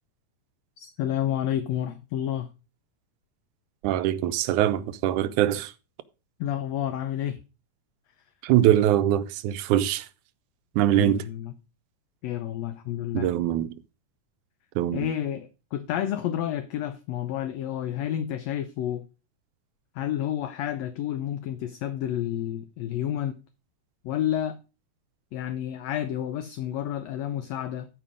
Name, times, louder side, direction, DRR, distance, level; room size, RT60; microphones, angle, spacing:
voice 1, 0.8-2.5 6.4-7.4 10.9-11.5 12.2-13.3 14.9-19.0 19.9-23.4 24.0-24.6 25.3-27.9, left 11 dB, 75° left, 1.7 m, -30 dB
voice 2, 3.8-5.7 8.4-10.1 10.8-11.3 13.1-13.7 14.8-15.1, right 12 dB, 80° right, 2.1 m, -23 dB
12.5 x 5.0 x 5.0 m
omnidirectional pair, 3.6 m